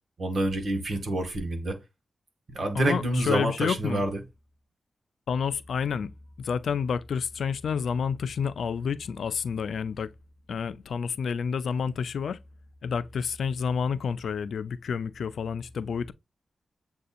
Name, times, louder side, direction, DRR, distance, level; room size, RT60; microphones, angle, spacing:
voice 1, 0.2-1.8 2.5-4.2, right 1 dB, 60° right, 1.7 m, -27 dB
voice 2, 2.7-4.0 5.3-6.1 6.4-10.1 10.5-12.4 12.8-16.1, left 6 dB, 85° left, 0.4 m, -29 dB
7.7 x 2.7 x 2.4 m
wide cardioid pair, 90°, 0 cm